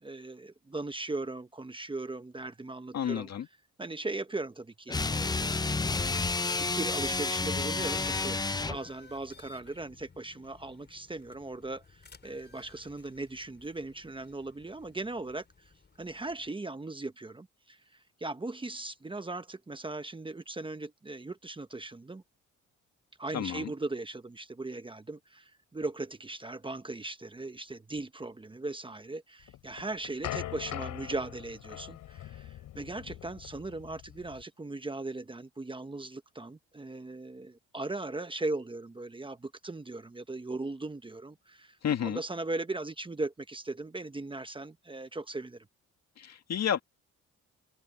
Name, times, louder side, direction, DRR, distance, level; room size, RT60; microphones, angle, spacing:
voice 1, 0.0-3.3 3.8-5.6 6.5-15.4 16.0-22.2 23.2-45.7, right 2 dB, 15° right, 1.1 m, -38 dB
voice 2, 2.9-3.5 23.3-23.7 41.8-42.2 46.2-46.8, left 9 dB, 60° left, 2.3 m, -31 dB
sound 1, 4.9-8.9, left 3 dB, 15° left, 0.6 m, -30 dB
sound 2, 5.9-16.5, left 4 dB, 35° left, 5.9 m, -58 dB
sound 3, 29.5-34.4, left 13 dB, 85° left, 3.2 m, -42 dB
cardioid pair, 90°, 30 cm